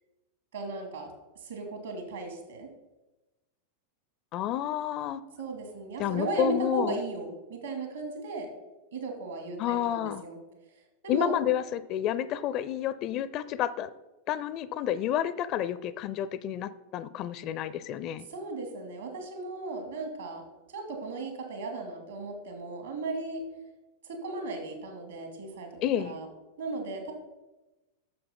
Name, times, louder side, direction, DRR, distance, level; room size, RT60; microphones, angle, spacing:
voice 1, 0.5-2.7 5.4-8.5 8.9-10.4 11.0-11.3 18.3-23.4 24.0-25.7 26.0-26.3 26.6-27.1, right 3 dB, 65° right, 4 dB, 2.4 m, -36 dB
voice 2, 4.3-5.2 6.0-7.0 9.6-10.2 11.1-13.9 14.3-18.3 25.8-26.2, left 11 dB, 40° left, 16 dB, 0.4 m, -30 dB
8.7 x 6.9 x 5.6 m, 1.1 s
figure-of-eight pair, 90°, 0 cm